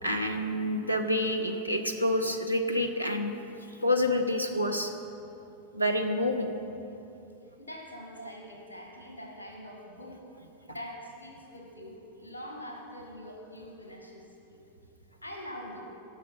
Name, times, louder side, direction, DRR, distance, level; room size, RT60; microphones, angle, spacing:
voice 1, 0.0-3.3 3.8-4.9 5.7-6.5 8.2-8.3, left 1 dB, 90° right, 4 dB, 0.9 m, -28 dB
voice 2, 7.6-10.2 10.7-14.6 15.2-15.8, equal, 80° left, 0 dB, 1.9 m, -44 dB
17.0 x 6.4 x 5.7 m, 2.8 s
figure-of-eight pair, 90°, 0 cm